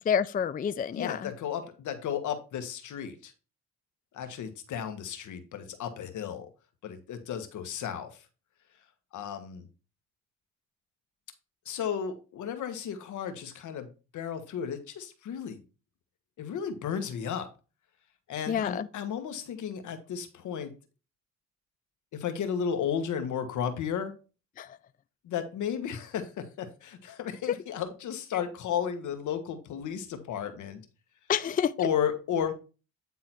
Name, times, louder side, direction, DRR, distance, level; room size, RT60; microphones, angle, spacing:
voice 1, 0.1-1.3 18.5-18.9 24.6-24.8 31.3-31.7, left 8 dB, 30° left, 0.4 m, -28 dB
voice 2, 0.9-3.3 4.1-6.5 6.8-8.2 9.1-9.7 11.6-15.6 16.4-17.5 18.3-20.7 22.1-24.1 25.2-30.8 31.8-32.5, left 8 dB, 75° left, 1.5 m, -33 dB
9.4 x 3.9 x 4.4 m
cardioid pair, 90°, 30 cm